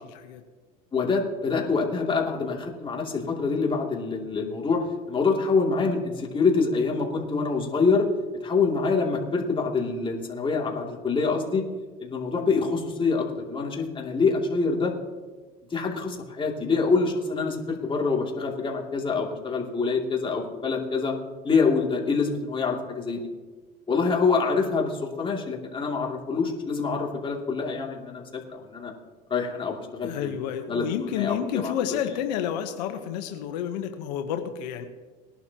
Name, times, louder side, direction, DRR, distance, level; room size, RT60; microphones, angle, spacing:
voice 1, 0.9-8.1 8.4-11.6 12.0-14.9 15.7-21.1 21.4-23.3 23.9-28.9 29.3-30.4 30.7-32.0, left 4 dB, 25° left, -1 dB, 2.7 m, -26 dB
voice 2, 30.0-34.8, left 9 dB, 85° left, 6 dB, 1.1 m, -30 dB
20.0 x 11.5 x 2.9 m, 1.4 s
supercardioid pair, 100°, 21 cm